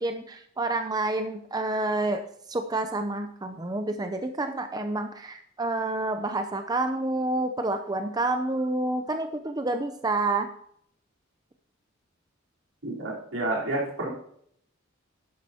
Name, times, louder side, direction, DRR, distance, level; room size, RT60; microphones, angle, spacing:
voice 1, 0.0-2.2 2.5-10.5, right 2 dB, 20° right, 6 dB, 0.6 m, -28 dB
voice 2, 12.8-14.1, right 2 dB, 80° right, -3 dB, 3.8 m, -29 dB
12.0 x 10.5 x 2.9 m, 0.66 s
head